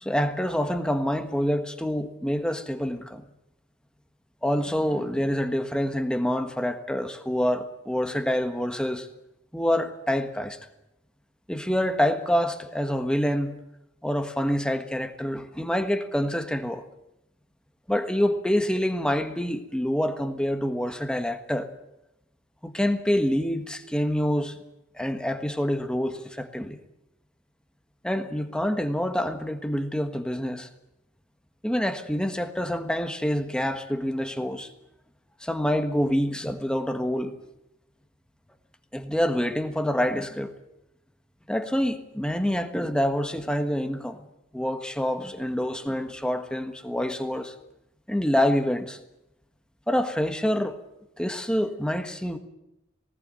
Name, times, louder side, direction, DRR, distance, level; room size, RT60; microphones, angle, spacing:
voice 1, 0.0-3.2 4.4-9.1 9.5-10.6 11.5-13.6 14.0-16.8 17.9-21.7 22.6-24.6 24.9-26.8 28.0-30.7 31.6-34.7 35.4-37.3 38.9-40.5 41.5-44.2 44.5-47.5 48.1-49.0 49.9-50.8 51.2-52.4, equal, 5° left, 7 dB, 1.5 m, -26 dB
19.5 x 18.0 x 9.2 m, 0.87 s
head